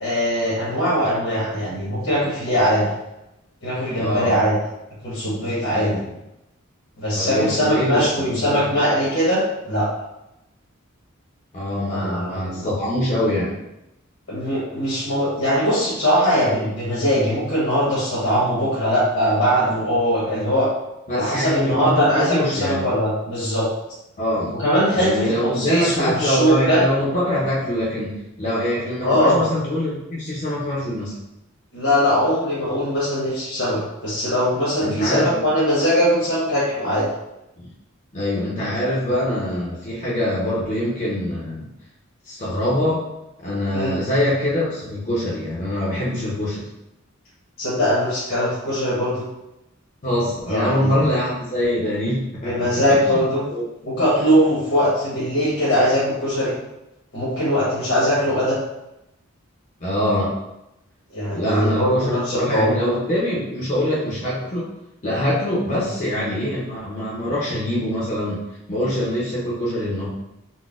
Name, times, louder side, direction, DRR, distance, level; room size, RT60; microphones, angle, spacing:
voice 1, 0.0-2.9 3.6-4.6 5.0-6.0 7.0-9.9 11.9-12.7 14.3-20.7 21.1-23.7 24.6-26.8 29.0-29.4 31.7-37.1 43.7-43.9 47.6-49.2 50.5-50.9 52.4-53.4 53.8-56.5 57.1-58.6 61.1-62.7 65.7-65.8, equal, 65° left, -10 dB, 1.0 m, -21 dB
voice 2, 4.0-4.3 5.7-6.0 7.1-8.7 11.5-13.6 21.1-22.8 24.2-24.5 24.9-31.1 34.8-35.4 38.1-41.7 42.3-43.0 43.4-46.7 50.0-53.2 53.5-53.6 59.8-60.3 61.3-64.7 65.0-68.4 68.7-70.1, left 1 dB, 35° left, -7 dB, 0.6 m, -24 dB
3.9 x 2.1 x 2.4 m, 0.91 s
head